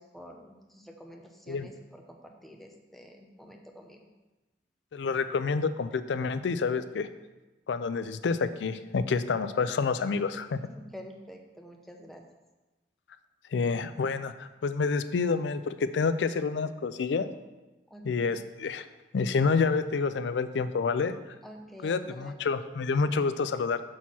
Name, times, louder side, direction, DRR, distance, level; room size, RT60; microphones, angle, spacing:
voice 1, 0.0-4.1 10.7-12.2 17.9-18.4 21.4-22.3, equal, ahead, 2 dB, 0.7 m, -48 dB
voice 2, 4.9-7.1 7.7-10.6 13.5-17.3 18.0-18.9 19.1-21.2 21.8-23.8, left 4 dB, 90° left, 12 dB, 0.4 m, -28 dB
6.4 x 4.2 x 6.0 m, 1.1 s
head